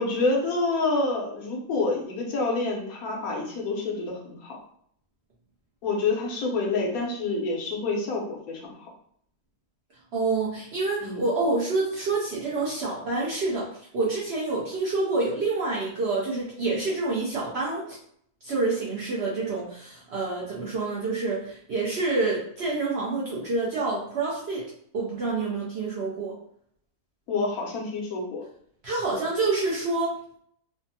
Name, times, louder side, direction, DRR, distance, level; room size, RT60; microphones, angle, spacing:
voice 1, 0.0-4.6 5.8-8.9 11.0-11.2 27.3-28.4, left 3 dB, 70° left, -2 dB, 1.2 m, -27 dB
voice 2, 10.1-18.0 18.4-24.6 24.9-26.3 28.8-30.4, right 3 dB, 60° right, -6 dB, 0.7 m, -27 dB
3.4 x 2.0 x 2.6 m, 0.66 s
omnidirectional pair, 1.7 m